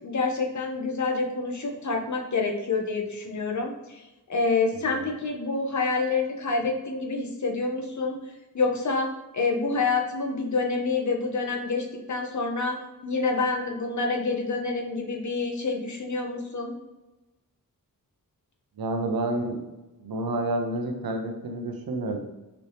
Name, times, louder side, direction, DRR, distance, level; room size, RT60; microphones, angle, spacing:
voice 1, 0.0-4.0 4.3-8.2 8.5-9.1 9.3-12.8 13.0-16.7, left 3 dB, 55° left, 1 dB, 0.8 m, -27 dB
voice 2, 18.8-19.6 20.0-22.2, right 2 dB, 75° right, 4 dB, 0.7 m, -29 dB
4.2 x 2.8 x 3.3 m, 1.0 s
wide cardioid pair, 75°, 36 cm